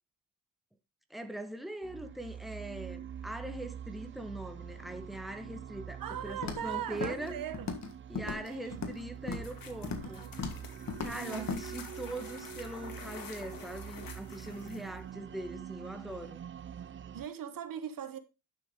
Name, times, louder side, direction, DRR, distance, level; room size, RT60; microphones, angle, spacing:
voice 1, 1.1-7.4 8.1-10.3 11.0-16.4, right 1 dB, ahead, 1.3 m, -42 dB
sound 1, 1.8-17.3, right 8 dB, 35° right, 0.5 m, -45 dB
voice 2, 6.0-7.7 8.3-8.8 10.0-10.4 11.1-11.6 17.1-18.2, right 9 dB, 70° right, 1.2 m, -40 dB
Walk footsteps, 6.4-6.7 7.0-7.3 7.5-7.9 8.2-9.0 9.3-9.5 9.8-10.1 10.4-10.6 10.9-11.1 11.5-11.6, left 4 dB, 50° left, 1.8 m, -37 dB
sound 2, 9.4-15.0, left 6 dB, 75° left, 1.9 m, -49 dB
11.0 x 6.5 x 3.7 m
cardioid pair, 95°, 35 cm